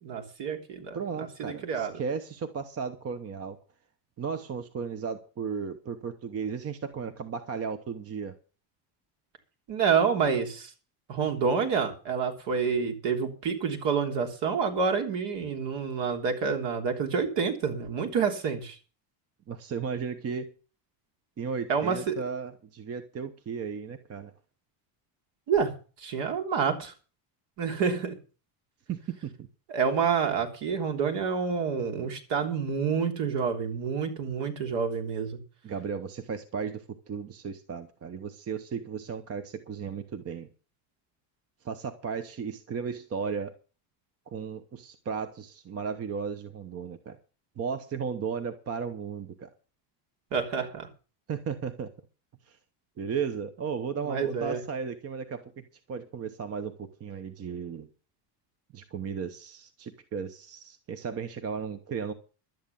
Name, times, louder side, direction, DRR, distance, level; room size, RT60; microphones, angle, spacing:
voice 1, 0.0-1.0 1.4-1.9 9.7-10.7 11.1-18.8 21.7-22.2 25.5-25.7 26.0-26.9 27.6-28.2 29.7-35.4 50.3-50.9 54.0-54.6, right 6 dB, 60° right, 3.4 m, -28 dB
voice 2, 0.9-3.6 4.2-8.4 19.5-20.5 21.4-24.3 28.9-29.5 35.6-40.5 41.6-43.6 44.3-47.2 47.6-49.5 51.3-51.9 52.5-52.6 53.0-57.9 58.7-62.1, right 6 dB, 30° right, 1.0 m, -35 dB
12.0 x 9.8 x 7.0 m
cardioid pair, 170°, 49 cm